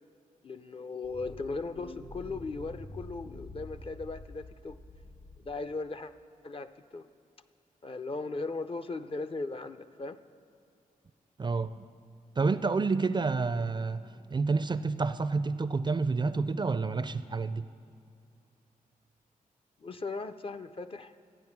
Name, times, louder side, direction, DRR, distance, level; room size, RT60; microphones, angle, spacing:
voice 1, 0.4-4.8 5.4-6.1 6.4-7.1 7.8-10.2 19.8-21.1, left 3 dB, 40° left, 10 dB, 0.5 m, -38 dB
sound 1, 1.0-5.7, left 2 dB, 80° left, 1.4 m, -47 dB
voice 2, 11.4-11.7 12.4-14.0 14.3-17.6, right 4 dB, 30° right, 13 dB, 0.4 m, -29 dB
12.5 x 8.9 x 5.9 m, 2.5 s
cardioid pair, 75°, 15 cm